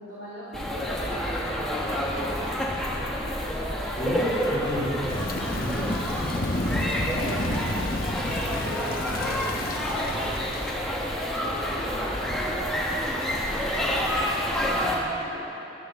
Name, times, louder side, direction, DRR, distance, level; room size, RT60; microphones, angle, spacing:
voice 1, 0.0-3.5 4.1-4.4 7.1-8.3 8.6-11.1 11.4-15.5, equal, 65° right, -11 dB, 2.7 m, -40 dB
sound 1, 0.5-15.0, equal, 5° left, 1.4 m, -29 dB
voice 2, 4.0-6.6, left 1 dB, 25° left, -12 dB, 2.2 m, -31 dB
Thunder / Rain, 5.1-10.8, left 2 dB, 50° left, 0.9 m, -31 dB
12.0 x 8.3 x 7.0 m, 2.8 s
head